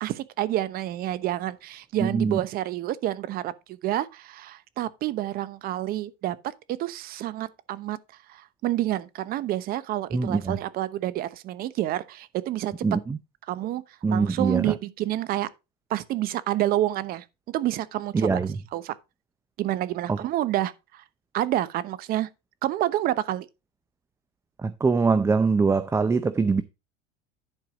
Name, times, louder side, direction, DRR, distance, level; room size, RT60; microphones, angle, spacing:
voice 1, 0.0-8.0 8.3-12.7 13.5-13.8 14.1-15.5 15.9-18.4 18.7-19.0 19.6-21.0 21.3-22.3 22.6-23.5, right 14 dB, 50° right, 0.9 m, -28 dB
voice 2, 2.0-2.4 10.1-10.6 12.8-13.2 14.0-14.7 18.1-18.6 20.1-20.2 24.6-26.6, right 4 dB, 15° right, 0.5 m, -23 dB
11.0 x 4.7 x 4.9 m
supercardioid pair, 125°, 20 cm